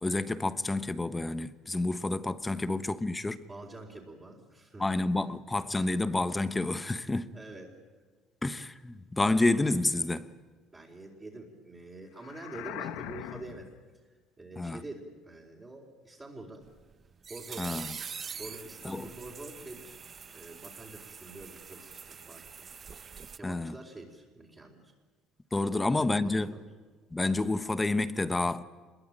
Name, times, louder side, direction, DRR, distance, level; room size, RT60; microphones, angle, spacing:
voice 1, 0.0-3.4 4.8-7.3 8.4-10.3 14.6-14.8 17.6-18.0 18.8-19.0 23.4-23.7 25.5-26.5 27.1-28.6, left 2 dB, 15° left, 1.1 m, -29 dB
voice 2, 3.5-5.0 7.3-7.7 10.7-16.7 17.3-18.1 18.4-20.0 20.3-22.7 23.3-24.9 25.7-26.7, right 2 dB, 20° right, 4.4 m, -46 dB
sound 1, 12.2-13.8, left 12 dB, 85° left, 1.3 m, -41 dB
sound 2, 16.7-23.4, right 6 dB, 35° right, 0.8 m, -44 dB
25.5 x 22.0 x 9.0 m
supercardioid pair, 100°, 0 cm